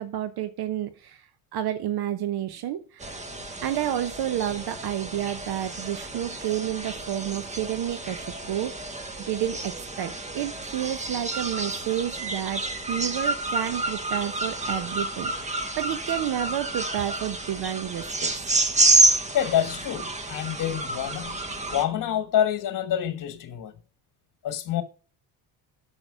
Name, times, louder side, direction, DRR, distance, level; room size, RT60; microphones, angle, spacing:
voice 1, 0.0-3.2 3.6-18.3, right 11 dB, 60° right, 1.1 m, -30 dB
sound 1, 3.0-21.8, right 2 dB, 15° right, 1.4 m, -29 dB
voice 2, 19.3-21.4 21.7-23.7 24.4-24.8, left 10 dB, 50° left, 1.6 m, -27 dB
9.0 x 6.4 x 6.3 m
cardioid pair, 115°, 42 cm